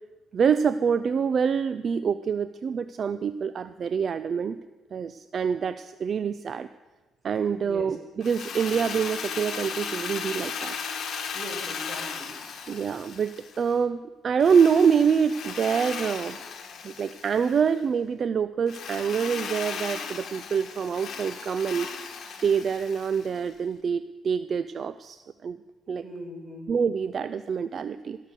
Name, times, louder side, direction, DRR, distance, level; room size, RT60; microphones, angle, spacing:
voice 1, 0.3-4.6 4.9-6.7 7.2-10.7 12.7-13.3 13.6-14.0 14.2-16.4 16.8-21.9 22.4-25.6 25.9-26.0 26.7-28.2, right 6 dB, 50° right, 13 dB, 0.4 m, -26 dB
voice 2, 7.6-8.0 11.3-12.4 26.0-26.7, equal, 20° right, -1 dB, 4.7 m, -40 dB
Drill, 8.2-13.7 14.4-17.7 18.7-23.5, left 6 dB, 60° left, 1.3 m, -36 dB
17.0 x 6.6 x 6.7 m, 1.2 s
cardioid pair, 90°, 0 cm